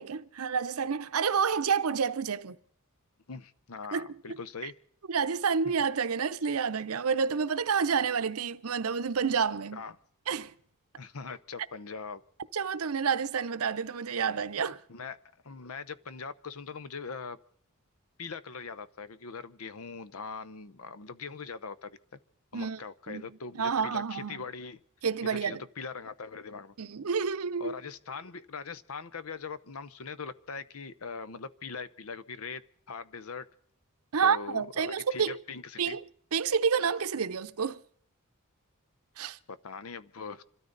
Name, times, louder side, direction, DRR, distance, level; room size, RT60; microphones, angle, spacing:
voice 1, 0.0-2.6 3.9-4.7 5.1-9.8 10.3-10.5 12.5-14.8 22.5-22.8 23.1-23.2 23.6-24.4 25.0-25.6 26.8-27.7 34.1-35.4 35.8-36.0 36.3-37.8 39.2-39.4, right 6 dB, 80° right, 0.7 m, -29 dB
voice 2, 3.3-4.7 9.7-9.9 11.0-12.2 14.9-15.2 15.4-17.4 18.2-22.0 22.5-24.8 25.2-26.7 27.6-32.6 32.9-33.5 34.2-36.0 39.5-40.4, left 5 dB, 70° left, 0.8 m, -41 dB
26.5 x 13.0 x 4.0 m
head